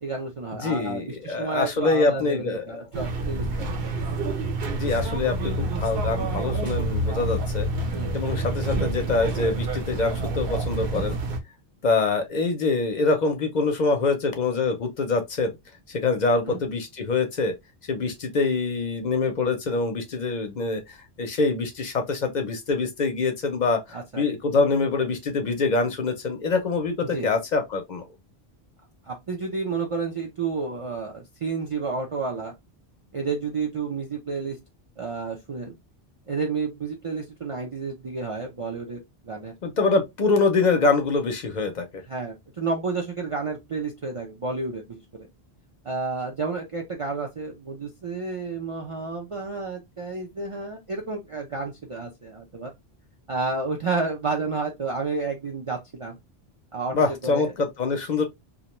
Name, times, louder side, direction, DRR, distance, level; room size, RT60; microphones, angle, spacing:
voice 1, 0.0-3.7 7.9-8.2 16.4-16.6 23.9-24.2 27.1-27.3 29.0-32.5 33.1-34.6 35.0-35.8 36.3-39.5 42.1-45.0 45.8-52.7 53.3-56.2 56.7-56.9 57.2-57.5, right 4 dB, 45° right, 0.4 m, -31 dB
voice 2, 0.6-2.8 4.7-7.7 8.1-11.2 11.8-15.5 15.9-17.5 17.9-28.1 39.6-42.0 56.9-58.3, left 3 dB, 55° left, 0.6 m, -25 dB
sound 1, 2.9-11.4, right 2 dB, 65° right, 0.8 m, -28 dB
2.5 x 2.1 x 2.8 m
omnidirectional pair, 1.1 m